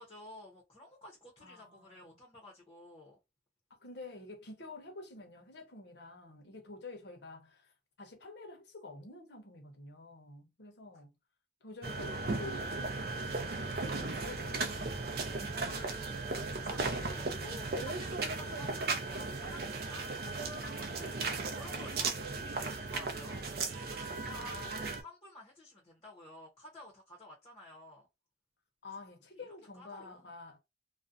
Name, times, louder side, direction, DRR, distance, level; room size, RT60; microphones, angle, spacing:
voice 1, 0.0-3.2 15.3-23.4 23.8-28.1 28.9-29.0 29.3-30.3, left 1 dB, 25° left, 0.7 m, -53 dB
voice 2, 1.4-2.2 3.8-7.7 8.0-11.1 11.6-15.1 15.3-16.3 17.0-17.3 24.3-24.9 28.8-30.6, left 2 dB, 70° left, 0.8 m, -49 dB
sound 1, 11.8-25.0, right 3 dB, 55° right, 0.4 m, -36 dB
2.5 x 2.1 x 2.4 m
head